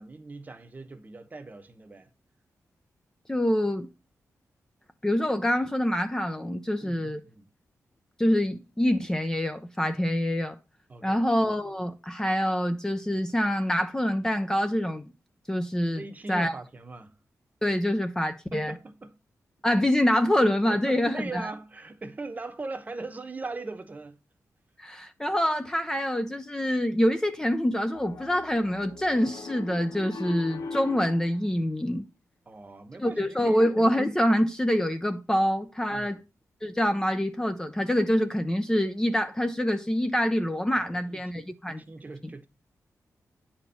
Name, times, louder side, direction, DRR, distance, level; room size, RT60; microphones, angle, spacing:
voice 1, 0.0-2.1 6.8-7.5 10.9-11.3 15.9-17.2 18.5-19.2 20.7-24.2 32.5-33.6 35.9-36.2 40.7-42.5, right 3 dB, 30° right, 1.1 m, -40 dB
voice 2, 3.3-3.9 5.0-7.2 8.2-10.6 11.0-15.0 15.5-16.0 16.3-16.5 17.6-18.7 19.6-21.5 24.8-32.0 33.0-36.2 36.6-41.8 42.2-42.3, equal, 10° left, 0.7 m, -26 dB
Piano, 27.9-31.4, left 3 dB, 80° left, 1.2 m, -39 dB
9.6 x 4.4 x 6.9 m
wide cardioid pair, 130°, 6 cm